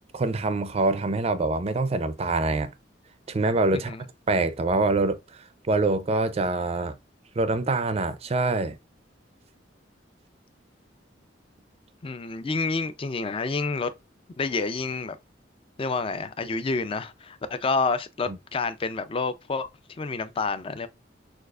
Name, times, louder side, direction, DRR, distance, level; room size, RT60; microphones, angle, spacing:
voice 1, 0.1-2.7 3.3-3.9 4.3-6.9 7.4-8.8, right 3 dB, 35° right, 0.4 m, -25 dB
voice 2, 12.0-13.9 14.4-15.2 15.8-19.7 20.0-20.9, left 4 dB, 30° left, 0.4 m, -28 dB
6.4 x 2.4 x 2.4 m
head